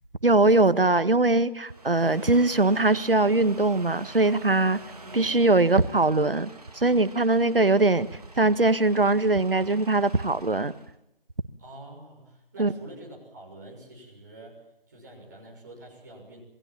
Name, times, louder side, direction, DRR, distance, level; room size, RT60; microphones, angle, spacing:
voice 1, 0.2-4.8 5.1-6.5 6.7-8.1 8.4-10.7 12.6-12.7, right 2 dB, 70° right, 1.6 m, -21 dB
sound 1, 1.6-10.9, right 2 dB, 40° right, 2.7 m, -47 dB
voice 2, 5.0-5.4 11.6-16.4, right 1 dB, 20° right, 6.3 m, -46 dB
28.0 x 19.5 x 7.4 m
figure-of-eight pair, 170°, 29 cm